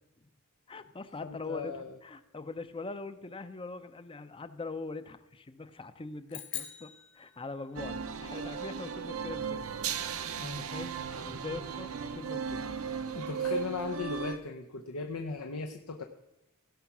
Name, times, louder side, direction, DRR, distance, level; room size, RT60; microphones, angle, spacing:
voice 1, 0.7-9.6 10.4-12.7, left 3 dB, 25° left, 12 dB, 0.6 m, -42 dB
voice 2, 1.2-2.0 10.4-10.6 13.1-16.0, left 4 dB, 80° left, 4 dB, 0.8 m, -37 dB
sound 1, 6.3-7.9, left 10 dB, 60° left, 1.7 m, -43 dB
sound 2, 7.8-14.4, right 6 dB, 70° right, 0.7 m, -36 dB
16.5 x 5.7 x 6.0 m, 0.92 s
head